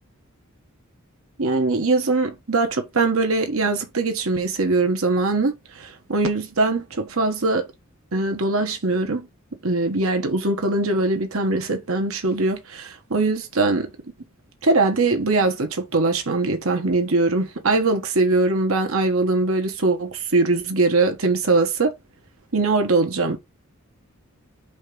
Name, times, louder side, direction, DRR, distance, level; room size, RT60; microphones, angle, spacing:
voice 1, 1.4-7.7 8.1-9.3 9.6-13.9 14.6-21.9 22.5-23.4, right 3 dB, 80° right, 1.4 m, -21 dB
5.2 x 3.7 x 5.3 m
head